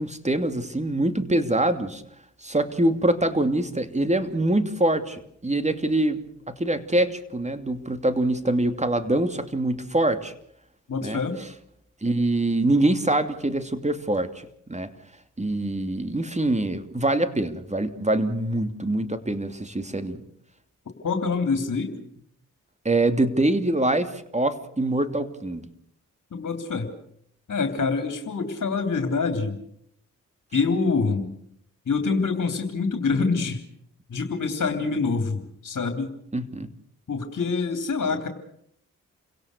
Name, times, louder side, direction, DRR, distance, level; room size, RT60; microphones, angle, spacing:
voice 1, 0.0-2.0 2.4-10.3 11.0-11.2 12.0-14.3 14.7-14.9 15.4-20.2 22.8-25.7 36.3-36.7, right 1 dB, 20° right, 9 dB, 2.8 m, -24 dB
voice 2, 10.9-11.4 21.0-21.9 26.3-26.9 27.5-29.6 30.5-31.2 31.9-33.6 34.1-36.1 37.1-38.3, left 4 dB, 55° left, 6 dB, 3.3 m, -25 dB
29.0 x 17.5 x 6.7 m, 0.70 s
supercardioid pair, 45°, 34 cm